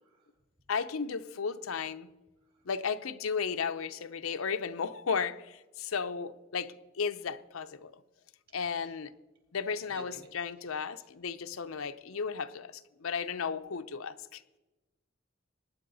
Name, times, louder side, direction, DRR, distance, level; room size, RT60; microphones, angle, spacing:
voice 1, 0.7-2.1 2.7-7.9 8.5-9.1 9.5-14.6, left 5 dB, 90° left, 10 dB, 0.6 m, -34 dB
voice 2, 8.5-9.0 9.9-10.3 10.6-11.1, right 2 dB, 50° right, 2 dB, 3.8 m, -54 dB
19.0 x 9.9 x 4.0 m, 1.0 s
head